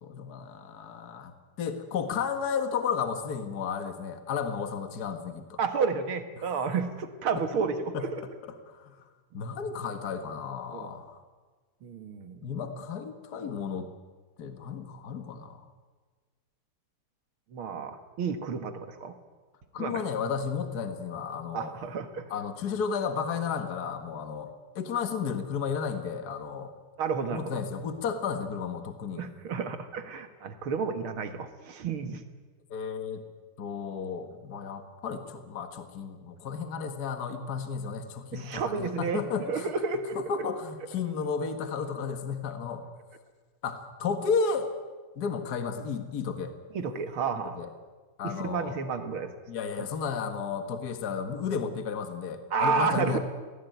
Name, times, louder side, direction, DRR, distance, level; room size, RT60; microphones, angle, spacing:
voice 1, 0.0-1.3 1.6-5.6 6.4-6.5 7.4-7.5 7.9-8.1 8.7-9.1 9.3-11.2 12.4-13.9 14.4-15.7 19.7-21.7 22.3-24.5 24.8-26.7 27.3-29.2 32.7-33.2 33.6-39.7 40.2-42.8 43.6-44.7 45.2-46.6 47.6-47.7 48.2-48.8 49.5-53.2, left 6 dB, 50° left, 7 dB, 2.0 m, -33 dB
voice 2, 5.6-8.2 10.7-11.0 11.8-12.4 17.5-19.1 19.8-20.0 21.5-22.3 27.0-27.6 29.1-32.2 38.3-39.2 39.5-40.2 46.7-47.6 48.2-49.3 52.5-53.2, right 5 dB, 70° right, 8 dB, 2.4 m, -31 dB
23.0 x 17.5 x 9.3 m, 1.4 s
omnidirectional pair, 2.4 m